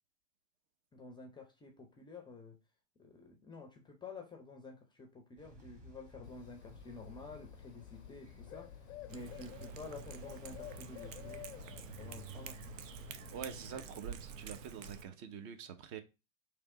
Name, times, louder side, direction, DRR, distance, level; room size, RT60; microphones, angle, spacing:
voice 1, 0.9-2.6 3.0-8.8 9.1-11.5 12.0-12.8, left 4 dB, 10° left, 0.5 m, -50 dB
sound 1, 5.4-12.4, right 2 dB, 20° right, 1.4 m, -57 dB
Bird, 6.2-14.0, left 11 dB, 85° left, 0.6 m, -52 dB
Cat, 9.1-15.0, right 7 dB, 75° right, 0.7 m, -48 dB
voice 2, 13.3-16.0, right 7 dB, 45° right, 0.8 m, -46 dB
3.5 x 2.9 x 4.7 m
hypercardioid pair, 115°, 39 cm